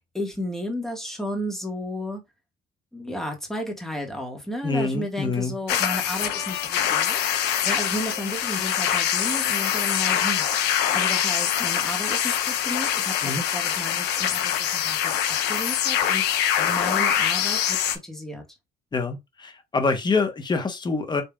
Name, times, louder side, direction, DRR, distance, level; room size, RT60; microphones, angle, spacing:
voice 1, 0.0-2.2 2.9-18.6, left 1 dB, ahead, 1.6 m, -33 dB
voice 2, 4.6-5.5 13.2-13.4 18.9-21.2, left 4 dB, 25° left, 1.2 m, -25 dB
Full radio sweep, 5.7-18.0, left 9 dB, 80° left, 0.9 m, -24 dB
5.2 x 3.3 x 2.4 m
cardioid pair, 110°, 17 cm